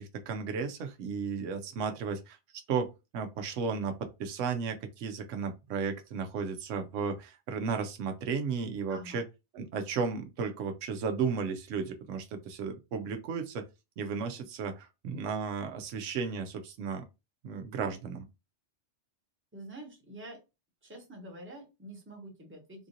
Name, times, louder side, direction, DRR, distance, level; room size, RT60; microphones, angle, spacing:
voice 1, 0.0-2.4 2.7-9.2 9.5-13.6 14.0-17.1 17.4-18.2, right 5 dB, 85° right, 0.9 m, -34 dB
voice 2, 8.9-9.2 19.5-20.4 20.8-22.9, right 1 dB, 10° right, 0.9 m, -47 dB
3.6 x 2.5 x 2.7 m
omnidirectional pair, 1.2 m